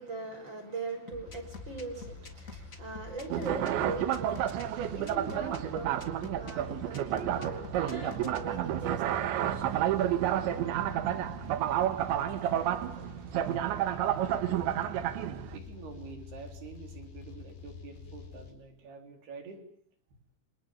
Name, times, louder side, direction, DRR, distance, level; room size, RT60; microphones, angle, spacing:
voice 1, 0.0-10.0, right 3 dB, 25° right, 6.2 m, -41 dB
sound 1, 1.1-8.4, left 4 dB, 25° left, 2.0 m, -47 dB
sound 2, 1.3-18.5, left 4 dB, 65° left, 6.8 m, -47 dB
sound 3, 3.3-15.6, right 11 dB, 80° right, 3.7 m, -30 dB
voice 2, 15.5-19.6, right 5 dB, 60° right, 5.8 m, -47 dB
29.0 x 27.0 x 7.3 m
omnidirectional pair, 5.4 m